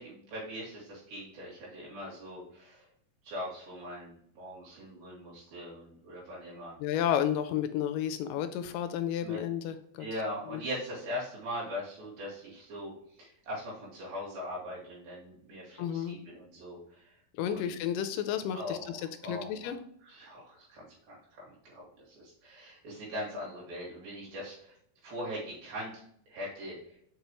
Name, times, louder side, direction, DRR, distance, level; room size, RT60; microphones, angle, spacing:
voice 1, 0.0-2.9 3.2-6.8 9.2-9.5 10.0-12.9 13.2-17.2 17.5-17.7 18.5-19.8 20.0-24.8 25.0-25.9 26.3-27.0, equal, 85° right, -5 dB, 4.2 m, -41 dB
voice 2, 6.8-10.1 10.5-10.6 15.8-16.2 17.3-19.8, left 9 dB, 80° left, 10 dB, 2.0 m, -32 dB
6.6 x 5.0 x 3.0 m, 0.68 s
omnidirectional pair, 4.1 m